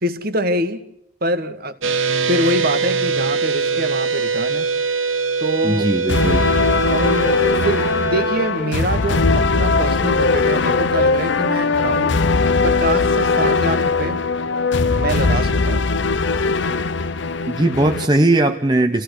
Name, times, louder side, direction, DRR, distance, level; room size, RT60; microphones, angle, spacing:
voice 1, 0.0-0.8 1.2-1.9 2.3-4.7 5.4-5.9 6.9-12.2 12.6-14.2 15.0-15.9, right 1 dB, 45° right, 9 dB, 1.7 m, -25 dB
sound 1, 1.8-8.5, right 4 dB, 75° right, 1.3 m, -22 dB
voice 2, 5.6-6.4 17.5-19.0, right 2 dB, 20° right, 5 dB, 0.8 m, -18 dB
sound 2, 6.1-18.1, left 4 dB, 60° left, 0.8 m, -19 dB
28.0 x 16.5 x 6.5 m, 0.79 s
head